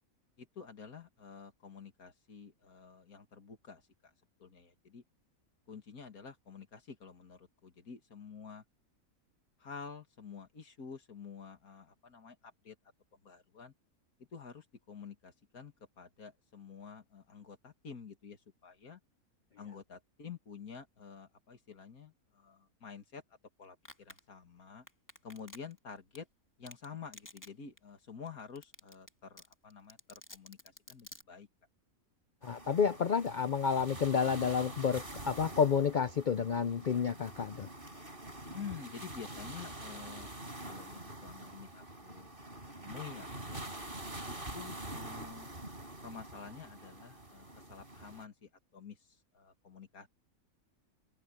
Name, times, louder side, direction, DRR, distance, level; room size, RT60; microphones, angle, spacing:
voice 1, 0.4-4.1 4.4-5.0 5.7-8.6 9.6-12.8 13.1-13.7 14.3-19.0 19.6-23.2 23.6-24.9 25.2-26.3 26.6-31.5 38.4-40.3 40.6-42.3 42.8-43.6 44.2-45.5 46.0-50.1, left 6 dB, 85° left, 2.7 m, -49 dB
Domestic sounds home sounds, 23.8-24.2 24.9-25.8 26.1-26.2 26.7-26.8 27.1-27.5 27.8-27.9 28.3-28.4 28.6-29.1 29.4-31.2, left 1 dB, 10° left, 2.2 m, -50 dB
voice 2, 32.4-37.7, left 6 dB, 65° left, 0.4 m, -30 dB
sound 1, 32.4-48.3, right 1 dB, 35° right, 5.0 m, -46 dB
open air
omnidirectional pair, 1.5 m